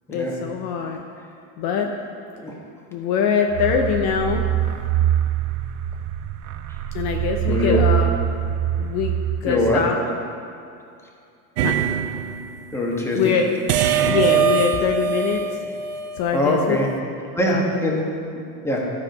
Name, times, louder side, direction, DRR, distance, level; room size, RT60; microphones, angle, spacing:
voice 1, 0.1-1.0 1.6-2.0 2.9-4.5 6.9-8.1 8.8-9.1 9.4-9.9 11.6-11.7 13.1-13.5 14.1-15.5 16.2-16.8 17.5-17.6, left 6 dB, 50° left, 3 dB, 0.8 m, -23 dB
sound 1, 3.5-10.1, right 11 dB, 40° right, 0.4 m, -24 dB
voice 2, 7.5-7.8 9.4-9.8 12.7-13.4 16.3-16.9 17.3-18.0 18.3-18.9, left 1 dB, 5° left, -2 dB, 1.4 m, -22 dB
sound 2, 11.6-12.5 13.7-16.5, right 7 dB, 75° right, 0.7 m, -22 dB
12.5 x 4.9 x 5.3 m, 2.5 s
supercardioid pair, 125°, 48 cm